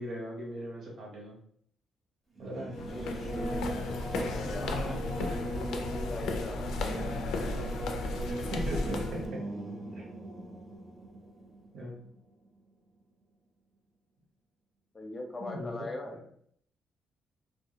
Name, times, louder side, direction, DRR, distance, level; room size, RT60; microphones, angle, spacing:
voice 1, 0.0-1.4 2.4-2.8 5.2-5.4 8.5-9.4 9.9-10.1 11.7-12.0 15.4-15.7 16.0-16.2, equal, 60° right, -2 dB, 0.9 m, -38 dB
Singing / Musical instrument, 2.4-12.5, right 1 dB, 25° right, 0.7 m, -39 dB
sound 1, 2.7-9.3, left 2 dB, 80° left, 0.3 m, -35 dB
voice 2, 2.9-3.6 4.2-7.4 14.9-16.1, left 2 dB, 30° left, 3 dB, 0.5 m, -42 dB
2.1 x 2.0 x 2.8 m, 0.63 s
cardioid pair, 90°, 0 cm